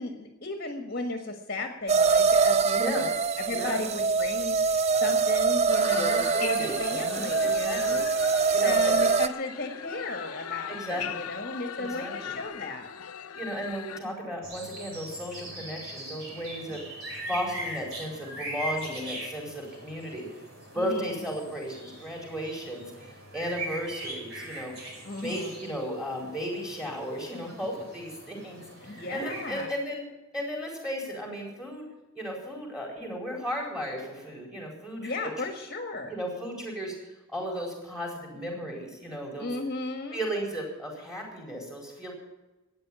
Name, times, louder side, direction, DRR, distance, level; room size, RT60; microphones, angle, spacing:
voice 1, 0.0-3.1 3.4-4.6 5.0-8.1 8.6-12.9 20.8-21.2 25.0-25.5 28.8-29.7 35.0-36.1 39.4-40.2, left 2 dB, 45° left, 4 dB, 1.6 m, -35 dB
sound 1, 1.9-9.3, right 5 dB, 30° right, 0.4 m, -24 dB
voice 2, 2.7-3.0 3.5-3.8 6.0-8.0 8.5-8.9 10.7-11.0 11.8-12.4 13.3-20.2 20.7-24.7 25.2-30.0 30.3-31.8 32.1-35.5 36.1-39.5 40.1-42.1, equal, 5° right, 0 dB, 4.5 m, -35 dB
sound 2, 5.7-14.0, left 8 dB, 85° left, 0.7 m, -39 dB
sound 3, 14.4-29.7, right 1 dB, 65° right, 5.8 m, -41 dB
13.5 x 9.6 x 8.8 m, 1.1 s
head